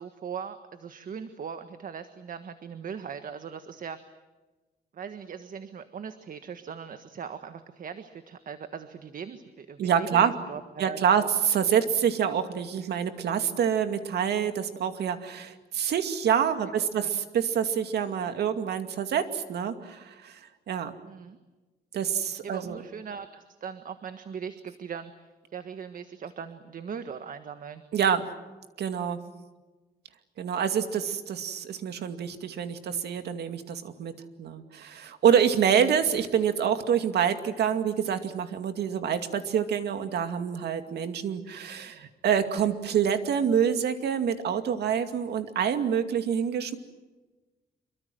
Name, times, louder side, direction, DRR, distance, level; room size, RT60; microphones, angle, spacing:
voice 1, 0.0-4.0 4.9-11.3 16.6-17.1 21.0-21.4 22.4-27.8 35.8-36.0, right 7 dB, 55° right, 9 dB, 1.5 m, -40 dB
voice 2, 9.8-10.3 10.8-20.4 20.7-20.9 21.9-22.8 27.9-28.2 28.8-29.2 30.4-34.1 34.4-46.8, right 8 dB, 85° right, 8 dB, 2.4 m, -26 dB
26.5 x 24.0 x 7.9 m, 1.2 s
cardioid pair, 115°, 17 cm